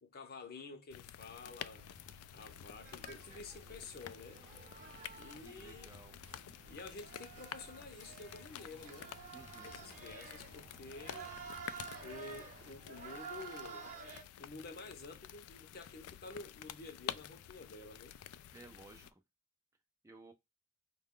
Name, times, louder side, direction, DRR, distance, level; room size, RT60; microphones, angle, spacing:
voice 1, 0.0-1.9 2.3-4.4 5.2-5.9 6.7-9.1 9.6-11.3 12.0-13.9 14.4-18.2, left 3 dB, 45° left, 0.7 m, -50 dB
sound 1, 0.9-19.1, left 10 dB, 90° left, 0.3 m, -50 dB
sound 2, 1.8-12.8, right 2 dB, 90° right, 0.7 m, -61 dB
sound 3, 2.8-14.2, right 5 dB, 35° right, 0.8 m, -51 dB
voice 2, 5.4-6.1 9.3-9.7 18.5-19.2 20.0-20.3, right 2 dB, 15° right, 0.3 m, -56 dB
4.6 x 2.2 x 3.6 m
head